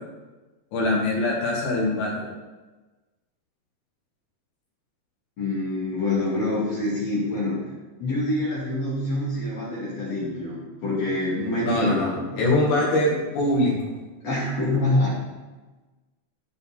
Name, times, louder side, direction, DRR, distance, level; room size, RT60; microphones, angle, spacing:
voice 1, 0.7-2.3 11.6-13.8, left 1 dB, 60° left, -5 dB, 3.9 m, -23 dB
voice 2, 5.4-7.6 8.0-12.5 14.2-15.2, left 2 dB, 40° left, -7 dB, 2.9 m, -26 dB
14.5 x 5.1 x 4.3 m, 1.2 s
omnidirectional pair, 5.7 m